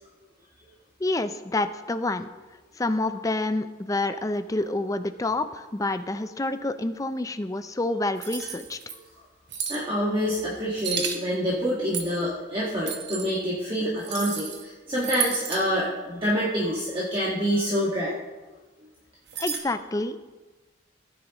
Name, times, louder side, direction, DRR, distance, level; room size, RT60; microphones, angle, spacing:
voice 1, 1.0-2.3 2.8-8.8 19.4-20.2, left 2 dB, 15° left, 10 dB, 0.4 m, -28 dB
sound 1, 8.2-9.0 9.5-9.8 10.8-11.2 11.9-12.2 12.9-13.3 14.0-14.6 15.0-15.6 19.3-19.6, right 7 dB, 60° right, 1.2 m, -32 dB
voice 2, 9.7-18.2, equal, 25° right, -6 dB, 1.6 m, -27 dB
16.0 x 9.6 x 3.0 m, 1.2 s
head